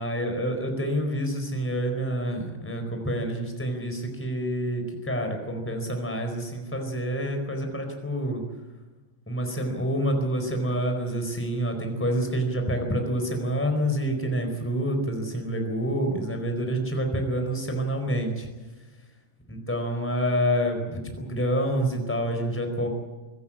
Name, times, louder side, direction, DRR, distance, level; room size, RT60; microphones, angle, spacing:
voice 1, 0.0-8.4 9.3-18.5 19.5-22.9, equal, 5° left, 4 dB, 3.9 m, -27 dB
24.5 x 17.0 x 8.8 m, 1.2 s
omnidirectional pair, 5.0 m